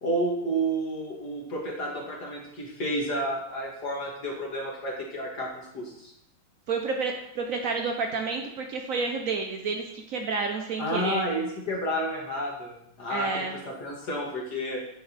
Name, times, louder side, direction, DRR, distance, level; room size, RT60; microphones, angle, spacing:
voice 1, 0.0-6.1 10.8-14.8, right 1 dB, 55° left, -2 dB, 1.9 m, -31 dB
voice 2, 6.7-11.2 13.1-13.6, right 4 dB, 70° right, 3 dB, 0.7 m, -30 dB
10.0 x 4.3 x 4.0 m, 0.78 s
omnidirectional pair, 2.2 m